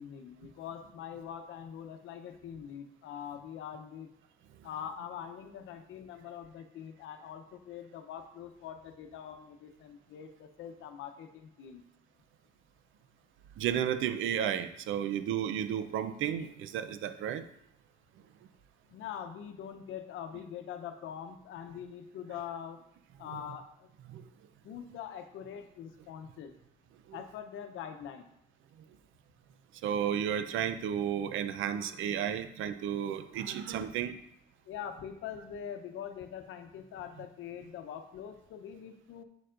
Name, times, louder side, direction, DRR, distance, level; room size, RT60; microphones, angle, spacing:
voice 1, 0.0-4.1 4.6-11.8 18.9-22.8 23.2-23.9 24.6-26.6 27.1-28.3 34.7-39.2, left 8 dB, 85° left, 7 dB, 0.8 m, -43 dB
voice 2, 13.6-17.4 23.3-23.4 24.1-24.2 29.8-34.1, right 9 dB, 85° right, 10 dB, 0.6 m, -32 dB
8.1 x 6.8 x 2.5 m, 0.74 s
cardioid pair, 90°, 20 cm